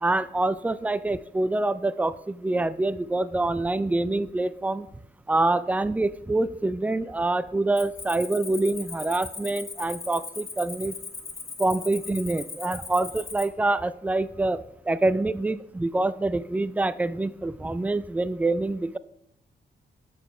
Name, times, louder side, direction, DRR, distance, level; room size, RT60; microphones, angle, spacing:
voice 1, 0.0-4.9 5.3-11.0 11.6-14.6 14.9-19.0, right 2 dB, 10° right, 15 dB, 0.3 m, -26 dB
Cricket, 7.8-13.5, left 4 dB, 35° left, 0.9 m, -39 dB
6.7 x 4.0 x 5.5 m, 0.75 s
cardioid pair, 80°, 19 cm